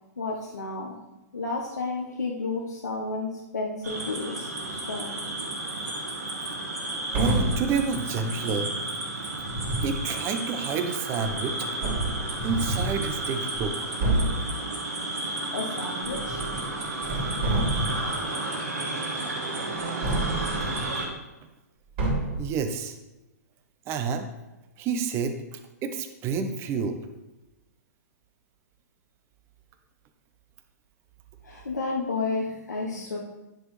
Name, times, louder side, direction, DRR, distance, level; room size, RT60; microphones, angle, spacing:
voice 1, 0.2-1.0 1.3-5.1 15.4-16.4 31.4-33.2, left 3 dB, 90° left, -2 dB, 1.1 m, -32 dB
sound 1, 3.8-21.1, right 2 dB, 80° right, 2.4 m, -32 dB
voice 2, 7.1-8.7 9.8-11.6 12.4-13.7 22.4-22.9 23.9-24.3 24.8-27.0, right 6 dB, 30° right, 7 dB, 0.8 m, -29 dB
sound 2, 7.1-7.7 9.4-10.0 11.3-11.4 11.8-13.0 13.5-13.7 14.0-14.5 16.0-16.7 17.0-18.1 20.0-21.0 22.0-22.5, right 1 dB, 45° right, 3.0 m, -28 dB
10.5 x 6.2 x 3.2 m, 1.0 s
hypercardioid pair, 120°, 9 cm